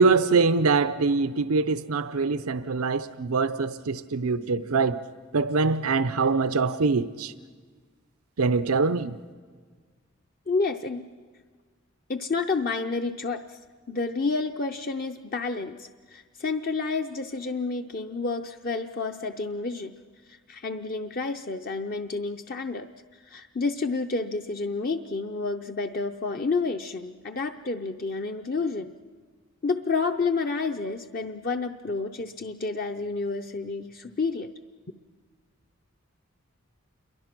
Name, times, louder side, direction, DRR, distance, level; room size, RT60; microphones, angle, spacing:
voice 1, 0.0-5.0 5.3-7.3 8.4-9.1, right 4 dB, 90° right, 0.7 m, -23 dB
voice 2, 10.5-11.1 12.1-13.6 13.9-20.0 20.3-28.9 29.6-34.5, left 4 dB, 40° left, 0.6 m, -30 dB
28.0 x 22.5 x 6.0 m
head